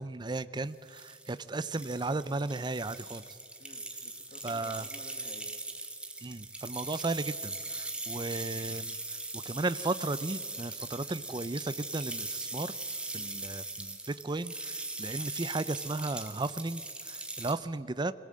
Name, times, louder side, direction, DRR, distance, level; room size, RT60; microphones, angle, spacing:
voice 1, 0.0-3.2 4.4-4.8 6.2-12.7 13.1-18.1, right 3 dB, 25° right, 15 dB, 0.5 m, -35 dB
sound 1, 0.7-17.5, right 2 dB, 5° right, 1.4 m, -40 dB
voice 2, 3.6-5.5 13.1-13.4, left 1 dB, 40° left, 6 dB, 1.5 m, -53 dB
21.0 x 18.0 x 7.6 m, 2.2 s
head